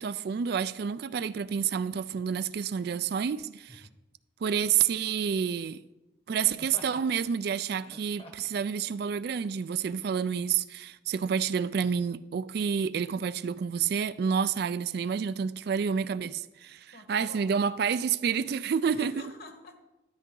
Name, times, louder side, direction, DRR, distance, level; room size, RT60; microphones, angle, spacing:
voice 1, 0.0-3.8 4.4-5.8 6.3-19.1, right 7 dB, 50° right, 0.3 m, -29 dB
Laughter, 2.1-2.3 3.6-4.0 6.3-7.1 7.7-8.6 9.3-9.5, left 1 dB, 30° left, 1.0 m, -49 dB
voice 2, 16.9-17.5 18.8-19.8, left 2 dB, 50° left, 1.4 m, -47 dB
13.0 x 9.1 x 3.8 m
head